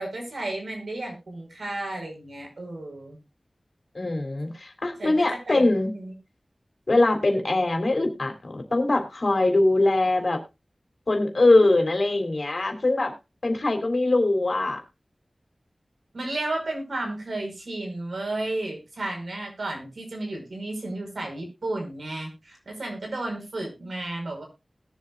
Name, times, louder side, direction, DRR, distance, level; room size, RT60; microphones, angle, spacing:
voice 1, 0.0-3.2 5.0-5.1 5.5-6.1 16.1-24.4, right 2 dB, 85° right, 1 dB, 5.2 m, -33 dB
voice 2, 3.9-5.9 6.9-10.4 11.1-13.1 13.4-14.8, left 2 dB, 60° left, 5 dB, 3.2 m, -22 dB
20.5 x 7.3 x 2.6 m, 0.26 s
wide cardioid pair, 65°, 0 cm